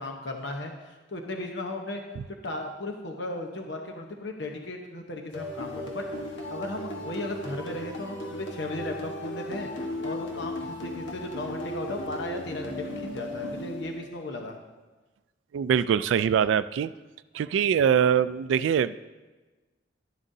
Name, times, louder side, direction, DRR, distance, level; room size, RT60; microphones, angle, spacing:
voice 1, 0.0-2.0 2.4-6.1 6.5-9.7 10.0-14.6, left 2 dB, 70° left, 2 dB, 1.0 m, -36 dB
sound 1, 5.3-14.3, left 1 dB, 85° left, 1.3 m, -36 dB
voice 2, 15.5-16.9 17.3-19.0, right 8 dB, 85° right, 15 dB, 0.3 m, -23 dB
11.5 x 11.0 x 2.7 m, 1.2 s
head